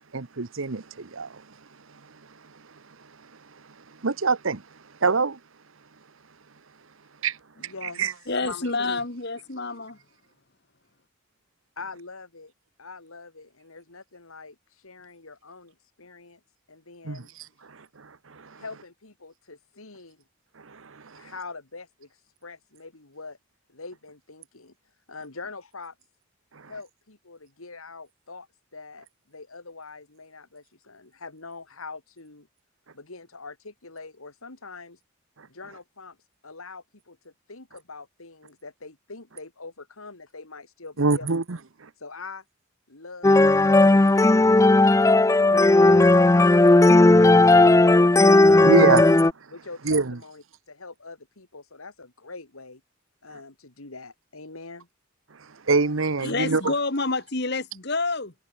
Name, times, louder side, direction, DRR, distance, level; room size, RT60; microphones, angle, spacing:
voice 1, 0.1-1.4 4.0-4.6 5.0-5.4 7.2-7.4 7.6-7.7 8.0-8.1 17.0-17.2 17.7-18.6 20.6-21.3 26.5-26.7 41.0-41.6 41.8-41.9 48.6-49.0 49.8-50.2 55.7-56.7, right 4 dB, 70° right, 1.0 m, -25 dB
voice 2, 7.6-9.0 11.8-12.5 12.8-16.4 16.7-17.3 17.6-17.7 18.6-20.2 21.1-23.4 23.7-24.7 25.1-25.9 26.6-28.5 28.7-32.5 32.9-35.0 35.5-36.2 36.4-41.4 42.0-42.4 42.9-43.5 43.8-49.0 49.5-52.8 53.2-54.9, left 3 dB, 85° left, 2.9 m, -43 dB
voice 3, 8.3-10.0 56.2-58.3, left 3 dB, 50° left, 2.4 m, -28 dB
sound 1, 43.2-49.3, left 2 dB, 15° left, 0.4 m, -16 dB
head